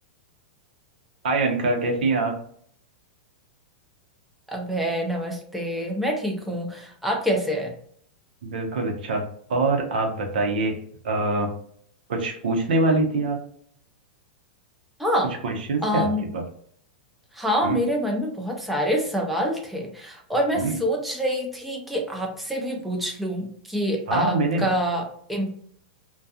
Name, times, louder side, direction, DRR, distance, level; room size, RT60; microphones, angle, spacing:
voice 1, 1.2-2.3 8.4-9.2 9.5-10.7 11.0-11.5 12.1-13.4 15.4-16.4 17.6-17.8 20.5-20.8 24.1-24.7, right 3 dB, 80° right, 3 dB, 0.7 m, -24 dB
voice 2, 4.5-7.7 15.0-15.3 15.8-16.2 17.3-25.6, equal, ahead, 0 dB, 0.6 m, -26 dB
2.4 x 2.2 x 2.7 m, 0.62 s
hypercardioid pair, 140°, 5 cm